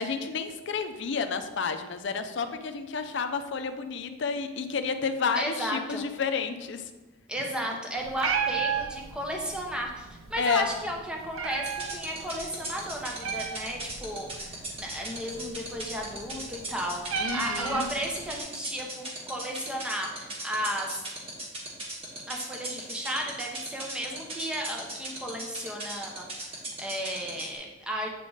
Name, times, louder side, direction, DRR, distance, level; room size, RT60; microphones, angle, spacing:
voice 1, 0.0-6.8 10.4-10.7 17.2-17.9, left 5 dB, 60° left, 8 dB, 0.5 m, -30 dB
voice 2, 5.3-6.0 7.3-21.0 22.3-28.1, equal, 5° right, 0 dB, 0.8 m, -34 dB
Meow, 8.0-18.4, right 6 dB, 80° right, 0.5 m, -36 dB
sound 1, 11.7-27.6, right 2 dB, 30° right, 1.5 m, -36 dB
8.1 x 3.7 x 3.9 m, 1.2 s
head